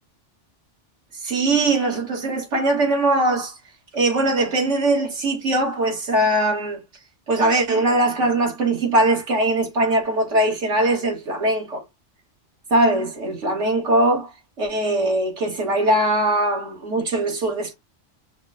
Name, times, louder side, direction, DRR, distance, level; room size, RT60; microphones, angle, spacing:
voice 1, 1.2-3.6 3.9-6.8 7.3-11.8 12.7-14.3 14.6-17.7, right 1 dB, 85° right, 1.7 m, -21 dB
5.8 x 2.1 x 2.4 m
omnidirectional pair, 1.2 m